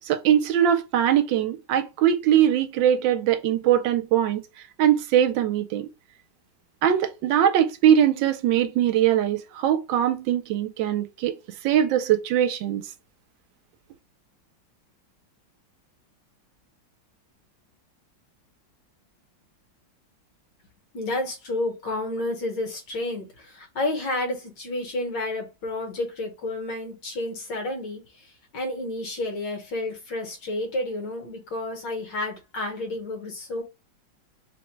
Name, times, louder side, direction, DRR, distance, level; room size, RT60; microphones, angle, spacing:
voice 1, 0.1-4.4 4.8-5.9 6.8-11.3 11.6-12.8, right 10 dB, 80° right, 1.3 m, -21 dB
voice 2, 20.9-28.0 28.5-33.6, left 2 dB, 70° left, 1.7 m, -30 dB
3.6 x 2.1 x 4.4 m
omnidirectional pair, 2.0 m